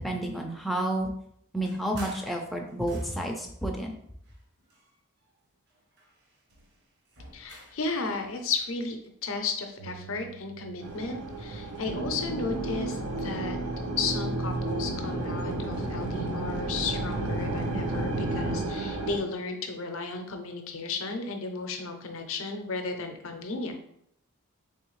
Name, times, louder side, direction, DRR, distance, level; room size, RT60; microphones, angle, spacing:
voice 1, 0.0-1.1 1.5-3.9, right 1 dB, ahead, 0 dB, 0.3 m, -30 dB
sound 1, 1.6-3.5 4.2-5.4 5.7-7.9, right 2 dB, 50° right, 0.8 m, -50 dB
voice 2, 7.3-13.6 14.0-23.7, left 4 dB, 65° left, 5 dB, 0.5 m, -34 dB
sound 2, 9.8-18.6, right 1 dB, 65° right, 1.0 m, -34 dB
sound 3, 10.8-19.2, right 3 dB, 90° right, 0.6 m, -35 dB
3.4 x 3.1 x 3.1 m, 0.72 s
head